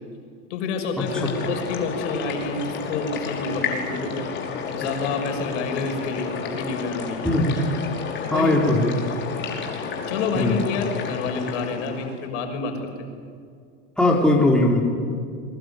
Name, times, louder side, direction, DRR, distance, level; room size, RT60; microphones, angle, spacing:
voice 1, 0.5-4.3 4.7-7.3 8.2-8.9 10.1-13.1, left 4 dB, 65° left, 4 dB, 6.4 m, -28 dB
sound 1, 1.0-12.3, left 5 dB, 30° left, 5.2 m, -31 dB
voice 2, 7.2-7.6 8.3-9.0 10.4-10.7 14.0-14.8, left 1 dB, ahead, -2 dB, 3.9 m, -19 dB
26.5 x 23.0 x 9.5 m, 2.2 s
supercardioid pair, 135°, 38 cm